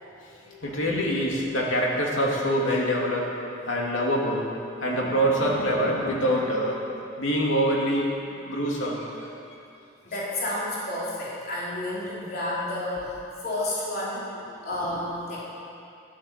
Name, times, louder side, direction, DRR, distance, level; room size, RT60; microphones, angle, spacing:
voice 1, 0.3-3.3 3.7-4.5 4.8-9.3 10.1-10.2 14.3-14.4 14.7-15.0, equal, 75° left, -2 dB, 2.7 m, -25 dB
voice 2, 10.0-13.1 13.4-14.2 14.6-15.4, left 1 dB, 50° left, -7 dB, 3.8 m, -30 dB
12.0 x 12.0 x 7.5 m, 2.6 s
head